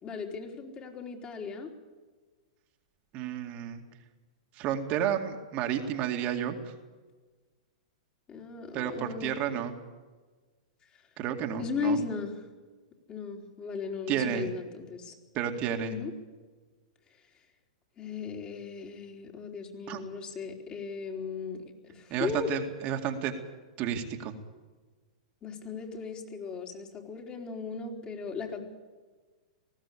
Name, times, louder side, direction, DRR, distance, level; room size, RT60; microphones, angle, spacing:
voice 1, 0.0-1.7 8.3-9.6 10.9-11.0 11.6-12.4 13.1-15.1 15.8-16.1 18.0-22.5 25.4-28.6, left 5 dB, 30° left, 2 dB, 3.8 m, -36 dB
voice 2, 3.1-3.8 4.5-6.7 8.7-9.7 11.2-12.0 14.1-14.5 15.3-15.9 19.9-20.0 22.1-23.4 23.8-24.4, right 9 dB, 40° right, 4 dB, 2.2 m, -31 dB
19.5 x 15.5 x 8.6 m, 1.3 s
hypercardioid pair, 120°, 4 cm